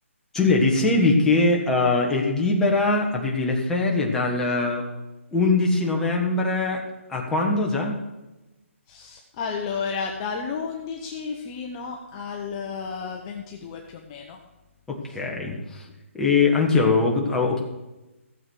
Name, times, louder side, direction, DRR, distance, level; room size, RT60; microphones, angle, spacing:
voice 1, 0.3-4.8 5.3-6.8 7.1-8.0 14.9-15.9 16.1-17.6, left 3 dB, 5° left, -2 dB, 1.5 m, -22 dB
voice 2, 8.9-14.4, left 5 dB, 25° left, 1 dB, 1.0 m, -32 dB
15.0 x 7.4 x 6.3 m, 1.0 s
hypercardioid pair, 160°, 7 cm